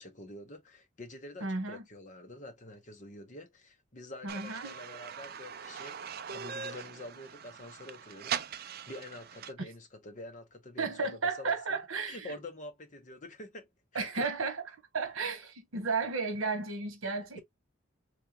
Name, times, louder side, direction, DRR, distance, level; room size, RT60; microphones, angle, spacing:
voice 1, 0.0-6.0 6.3-11.6 12.1-14.3, left 1 dB, 40° left, 1.0 m, -47 dB
voice 2, 1.4-1.8 4.2-4.8 10.8-12.3 13.9-14.6 14.9-17.4, right 4 dB, 85° right, 1.2 m, -33 dB
sound 1, 4.3-9.5, right 7 dB, 50° right, 0.4 m, -41 dB
3.5 x 3.4 x 2.9 m
head